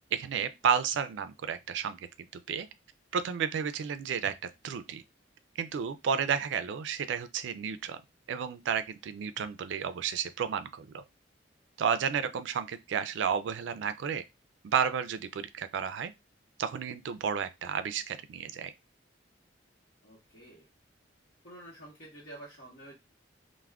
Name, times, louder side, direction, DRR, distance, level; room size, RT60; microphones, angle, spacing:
voice 1, 0.1-2.1 2.5-2.7 3.1-5.0 5.6-8.0 8.3-11.0 11.8-14.2 14.6-16.1 16.6-18.7, right 7 dB, 75° right, 0.3 m, -32 dB
voice 2, 20.0-20.7 21.4-22.9, right 1 dB, 60° left, 0.9 m, -49 dB
2.3 x 2.1 x 3.4 m
head